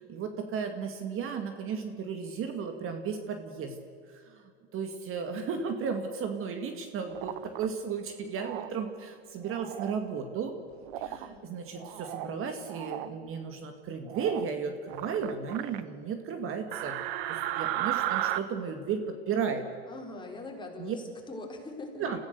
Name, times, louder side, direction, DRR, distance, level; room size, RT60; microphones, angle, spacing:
voice 1, 0.0-3.8 4.2-10.5 10.9-17.0 17.3-19.7 20.8-21.0 22.0-22.3, right 6 dB, 40° right, 6 dB, 2.1 m, -34 dB
sound 1, 7.1-7.7 8.4-8.7 9.4-10.0 10.9-11.3 11.7-12.3 12.7-13.1 14.1-14.5 14.9-15.8 16.7-18.4, right 13 dB, 65° right, 1.3 m, -34 dB
voice 2, 11.0-11.5 19.8-22.0, left 2 dB, 15° left, 0 dB, 4.5 m, -42 dB
25.0 x 15.5 x 6.9 m, 2.3 s
hypercardioid pair, 105°, 32 cm